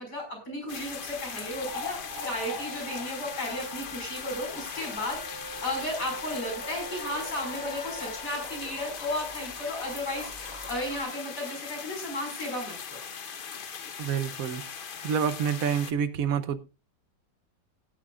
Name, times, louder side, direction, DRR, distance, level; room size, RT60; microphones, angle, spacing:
voice 1, 0.0-12.7, left 1 dB, 70° left, 1 dB, 6.1 m, -34 dB
sound 1, 0.7-15.9, left 6 dB, 50° left, 0.6 m, -40 dB
sound 2, 0.7-11.0, left 1 dB, 35° right, 4.2 m, -44 dB
sound 3, 2.6-8.3, equal, 10° right, 4.0 m, -44 dB
voice 2, 14.0-14.6 15.0-16.6, right 7 dB, 60° right, 13 dB, 1.2 m, -27 dB
17.5 x 10.5 x 2.4 m, 0.29 s
omnidirectional pair, 1.8 m